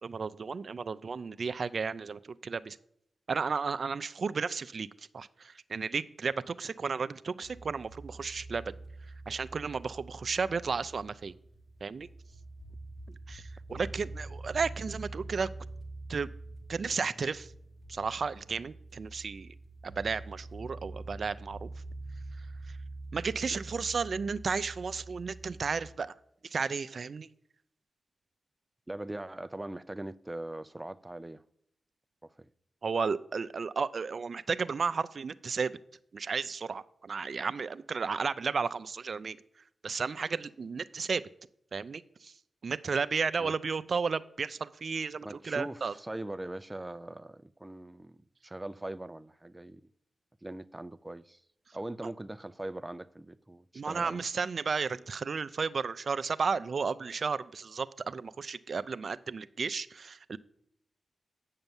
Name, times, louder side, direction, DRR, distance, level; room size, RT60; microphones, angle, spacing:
voice 1, 0.0-2.8 3.3-4.9 5.1-8.7 9.3-11.3 11.8-12.1 13.3-15.5 16.1-16.3 16.7-17.5 17.9-19.5 19.8-21.7 23.1-26.1 26.4-27.3 32.8-35.8 36.1-39.4 39.8-41.2 41.7-42.3 42.6-45.9 53.7-60.4, right 5 dB, 65° right, 0.5 m, -33 dB
sound 1, 7.4-25.9, right 2 dB, 30° left, 2.3 m, -45 dB
voice 2, 28.9-31.4 32.2-32.5 43.4-43.5 45.2-49.8 50.4-51.4 51.7-54.2, right 1 dB, 20° right, 0.6 m, -41 dB
9.1 x 6.6 x 7.1 m
cardioid pair, 55°, 0 cm